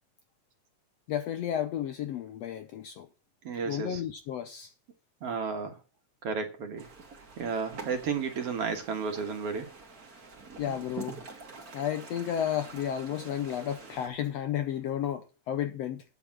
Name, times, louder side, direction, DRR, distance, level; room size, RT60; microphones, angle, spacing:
voice 1, 1.1-3.1 3.7-4.7 10.6-11.2 11.7-16.0, left 10 dB, 70° left, 1.6 m, -32 dB
voice 2, 3.4-4.0 5.2-5.8 6.2-6.9 7.4-9.7, right 5 dB, 55° right, 2.1 m, -32 dB
sound 1, 6.8-14.1, right 4 dB, 35° right, 1.8 m, -46 dB
9.5 x 7.0 x 7.2 m
omnidirectional pair, 3.6 m